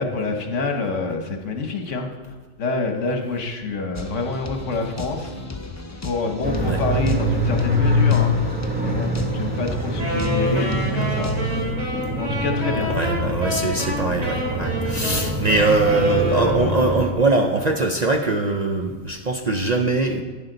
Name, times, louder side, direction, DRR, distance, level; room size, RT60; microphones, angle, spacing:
voice 1, 0.0-5.4 6.0-8.6 8.8-11.4 12.2-12.9, left 3 dB, 70° left, 4 dB, 1.4 m, -27 dB
sound 1, 3.9-11.6, left 2 dB, 20° left, 0.4 m, -35 dB
sound 2, 6.4-17.1, left 1 dB, 10° right, 1.0 m, -24 dB
Wind instrument woodwind instrument, 10.0-16.9, equal, 70° right, 3.3 m, -28 dB
voice 2, 12.9-20.2, right 3 dB, 45° right, 3 dB, 0.6 m, -22 dB
11.0 x 10.0 x 3.9 m, 1.3 s
omnidirectional pair, 1.4 m